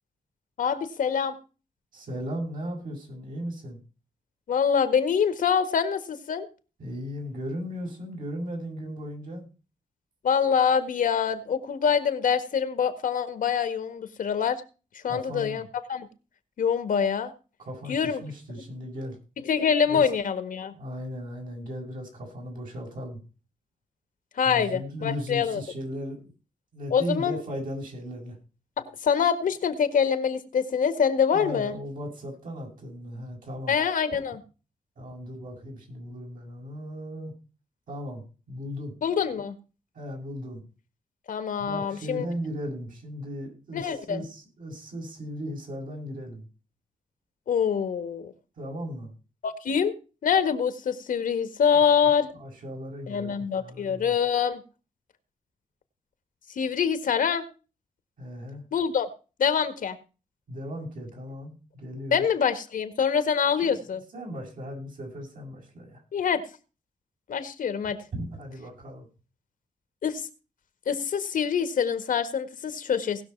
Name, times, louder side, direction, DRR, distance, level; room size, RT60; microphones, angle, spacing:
voice 1, 0.6-1.4 4.5-6.5 10.2-14.6 15.0-15.6 15.9-16.1 16.6-17.3 17.9-18.2 19.4-20.7 24.4-25.6 26.9-27.4 28.8-31.7 33.7-34.4 39.0-39.5 41.3-42.3 43.7-44.2 47.5-48.3 49.4-49.9 50.2-52.3 53.1-54.6 56.5-57.4 58.7-59.1 59.4-60.0 62.1-64.0 66.1-66.4 67.3-68.0 70.0-70.3 70.9-73.2, left 7 dB, 80° left, 10 dB, 1.7 m, -25 dB
voice 2, 1.9-3.8 6.8-9.4 15.0-15.7 17.6-19.2 19.9-20.1 20.7-23.2 24.4-26.2 26.7-28.4 31.3-33.7 35.0-37.3 37.9-38.9 39.9-40.6 41.6-46.5 48.6-49.1 52.3-54.2 58.2-58.6 60.5-62.2 63.6-66.0 68.1-69.1, equal, 75° right, 0 dB, 7.5 m, -37 dB
18.5 x 6.4 x 4.6 m, 0.34 s
cardioid pair, 90°, 14 cm